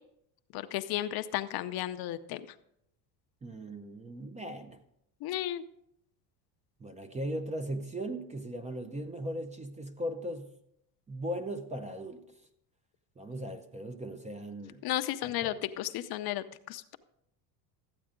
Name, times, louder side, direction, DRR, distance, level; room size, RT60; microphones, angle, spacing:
voice 1, 0.5-2.4 5.2-5.6 14.8-17.0, left 14 dB, 55° left, 10 dB, 0.6 m, -34 dB
voice 2, 3.4-4.8 6.8-10.5 11.1-12.3 13.2-14.8 15.2-15.6, right 1 dB, 15° right, 8 dB, 0.6 m, -38 dB
13.5 x 8.6 x 3.7 m, 0.76 s
cardioid pair, 135°, 45 cm